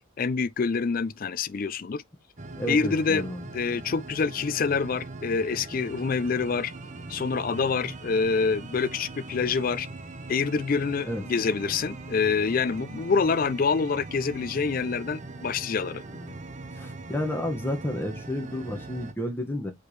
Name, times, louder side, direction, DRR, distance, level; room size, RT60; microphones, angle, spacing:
voice 1, 0.2-2.0 2.7-3.3 3.5-6.7 7.1-9.9 10.3-16.0, left 5 dB, 45° left, 0.4 m, -26 dB
sound 1, 2.4-19.1, right 2 dB, 35° right, 0.8 m, -41 dB
voice 2, 2.5-3.4 11.1-11.2 16.2-16.3 16.8-19.7, left 1 dB, 10° left, 1.4 m, -31 dB
6.4 x 5.1 x 3.1 m
head